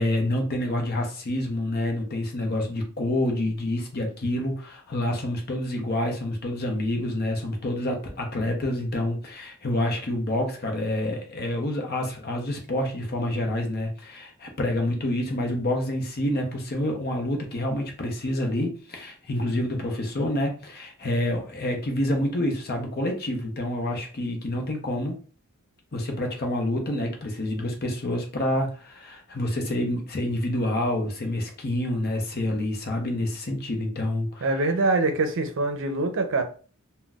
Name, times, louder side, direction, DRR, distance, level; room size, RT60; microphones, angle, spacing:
voice 1, 0.0-25.2 25.9-34.5, left 1 dB, 45° left, 3 dB, 0.7 m, -28 dB
voice 2, 34.4-36.4, right 3 dB, 60° right, 6 dB, 0.6 m, -24 dB
3.8 x 2.2 x 2.3 m, 0.38 s
head